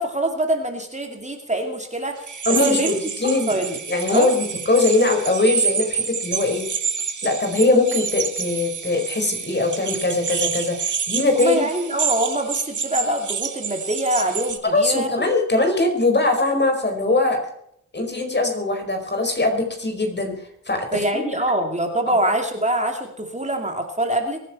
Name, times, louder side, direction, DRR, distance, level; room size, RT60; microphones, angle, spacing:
voice 1, 0.0-2.9 3.5-3.8 4.1-4.3 11.4-15.2 20.9-24.4, right 1 dB, 20° right, 4 dB, 2.5 m, -24 dB
sound 1, 2.2-14.6, right 6 dB, 70° right, 1.9 m, -28 dB
voice 2, 2.4-2.9 3.2-3.5 3.9-6.7 7.2-11.7 14.7-17.4 17.9-20.3 20.7-21.2 22.1-22.2, left 2 dB, 35° left, 4 dB, 4.8 m, -21 dB
23.5 x 10.0 x 4.4 m, 0.70 s
wide cardioid pair, 85°, 31 cm